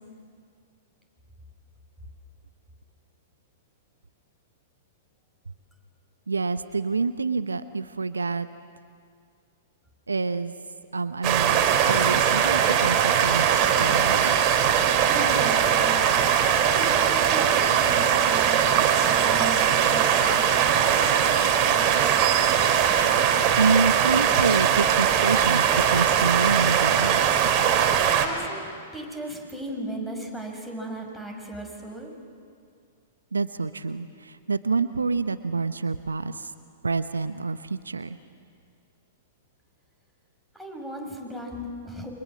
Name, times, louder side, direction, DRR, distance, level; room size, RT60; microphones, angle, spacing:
voice 1, 6.3-8.5 10.1-10.5 10.9-14.3 23.6-27.2 33.3-36.5 36.8-38.2, right 4 dB, 80° right, 12 dB, 0.9 m, -27 dB
sound 1, 11.2-28.3, right 8 dB, 40° right, 3.2 m, -21 dB
voice 2, 15.1-16.2 16.5-22.1 28.0-32.1 40.5-42.1, right 1 dB, 5° left, 2 dB, 6.2 m, -37 dB
29.5 x 25.0 x 7.5 m, 2.2 s
figure-of-eight pair, 105°, 0 cm